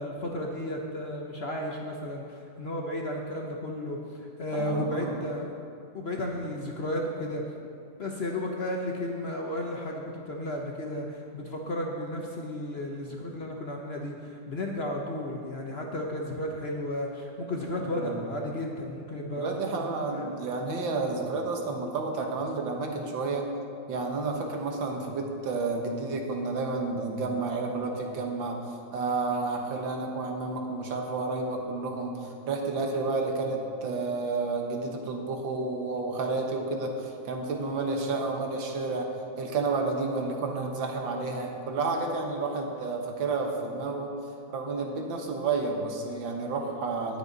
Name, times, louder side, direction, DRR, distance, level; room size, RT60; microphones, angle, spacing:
voice 1, 0.0-5.5 5.9-7.5 8.0-20.3, left 1 dB, 45° left, 0 dB, 0.9 m, -33 dB
voice 2, 4.5-5.2 17.8-18.3 19.4-23.5 23.9-28.6 28.9-39.1 39.4-44.1 44.5-47.2, right 3 dB, 90° right, 2 dB, 2.0 m, -31 dB
18.5 x 6.6 x 4.0 m, 2.5 s
omnidirectional pair, 2.0 m